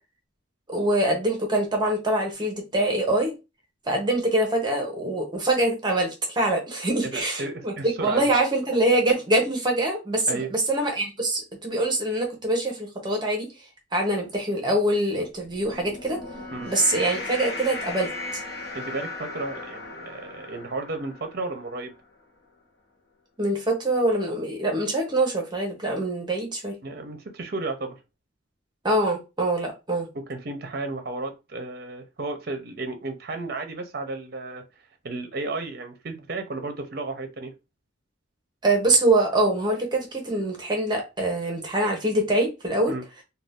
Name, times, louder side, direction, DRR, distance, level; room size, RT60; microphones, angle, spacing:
voice 1, 0.7-3.3 3.9-7.7 8.0-13.5 13.9-16.2 16.7-18.4 23.4-26.8 28.8-30.1 38.6-42.9, right 1 dB, 25° right, 0.8 m, -24 dB
voice 2, 7.0-8.3 10.3-10.5 16.5-16.7 18.7-21.9 26.8-28.0 30.1-34.7 35.0-37.5 42.9-43.0, right 3 dB, 50° right, 0.6 m, -33 dB
sound 1, 15.4-22.0, left 3 dB, 55° left, 0.7 m, -37 dB
2.6 x 2.3 x 3.4 m
head